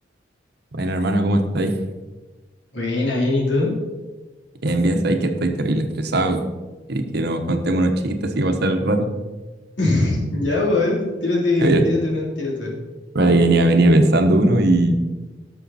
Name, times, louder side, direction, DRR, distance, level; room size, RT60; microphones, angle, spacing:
voice 1, 0.7-1.7 4.6-6.4 6.9-9.1 11.6-11.9 13.1-15.0, right 1 dB, 60° right, 5 dB, 1.1 m, -19 dB
voice 2, 2.7-3.8 9.8-12.8, left 2 dB, 75° left, -4 dB, 3.4 m, -21 dB
18.0 x 6.5 x 4.2 m, 1.2 s
head